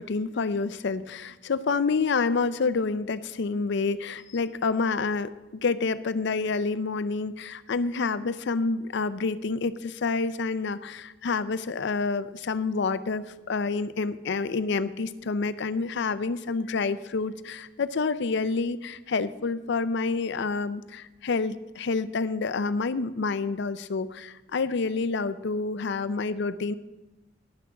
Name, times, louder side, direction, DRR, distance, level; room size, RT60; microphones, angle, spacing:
voice 1, 0.0-5.3 5.6-26.7, left 4 dB, 65° left, 14 dB, 0.5 m, -28 dB
11.5 x 6.1 x 7.1 m, 1.1 s
head